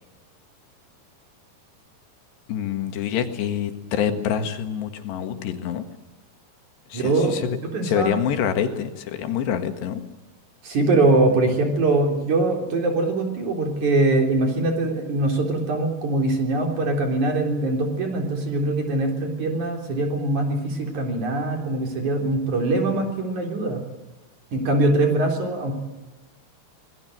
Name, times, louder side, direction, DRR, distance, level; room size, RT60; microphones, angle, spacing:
voice 1, 2.5-5.8 6.9-7.6 7.8-10.0, left 9 dB, 80° left, 7 dB, 3.9 m, -26 dB
voice 2, 6.9-7.3 7.6-8.1 10.6-23.8 24.5-25.8, right 2 dB, 45° right, 2 dB, 4.8 m, -22 dB
25.5 x 20.0 x 7.8 m, 1.1 s
omnidirectional pair, 4.9 m